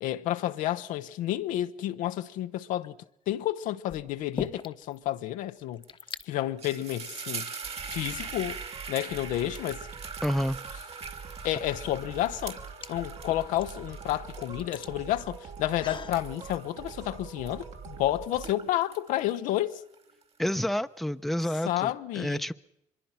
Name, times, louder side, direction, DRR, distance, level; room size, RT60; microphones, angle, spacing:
voice 1, 0.0-3.0 3.3-5.8 6.3-7.5 7.9-8.6 8.9-9.8 11.4-12.6 12.9-19.8 21.7-22.4, left 14 dB, 85° left, 0.9 m, -30 dB
sound 1, 2.7-3.1 3.9-5.0 5.3-5.4 5.6-6.3 7.1-7.2 7.8-8.7 10.4-10.5 11.2-16.2, left 6 dB, 40° left, 1.1 m, -43 dB
sound 2, 5.9-6.1 6.4-17.9 18.3-20.2, right 5 dB, 50° right, 2.6 m, -42 dB
sound 3, 7.6-18.5, right 6 dB, 65° right, 3.1 m, -44 dB
voice 2, 10.2-10.6 20.4-22.5, equal, ahead, 0.8 m, -29 dB
24.5 x 22.0 x 5.8 m
supercardioid pair, 70°, 13 cm